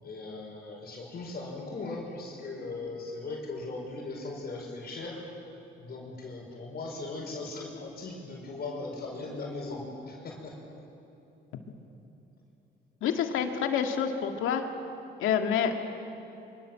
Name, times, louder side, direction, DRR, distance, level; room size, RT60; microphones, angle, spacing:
voice 1, 0.0-5.2 5.8-10.6, left 3 dB, 50° left, -1 dB, 5.6 m, -38 dB
voice 2, 13.0-14.6 15.2-15.7, left 8 dB, 85° left, 4 dB, 2.2 m, -27 dB
25.0 x 24.5 x 7.7 m, 2.9 s
cardioid pair, 90°, 20 cm